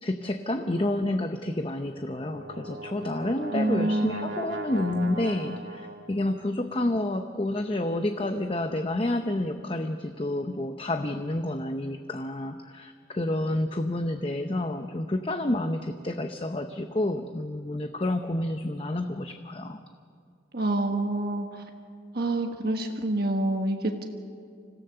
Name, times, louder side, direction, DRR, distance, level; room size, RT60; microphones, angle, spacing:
voice 1, 0.0-19.8, left 1 dB, 30° left, 6 dB, 0.7 m, -29 dB
Brass instrument, 2.0-6.2, right 1 dB, 70° right, 2.3 m, -38 dB
voice 2, 3.5-4.3 20.5-21.6 22.1-24.0, right 2 dB, 55° right, 3 dB, 1.4 m, -27 dB
26.0 x 16.5 x 6.8 m, 2.3 s
head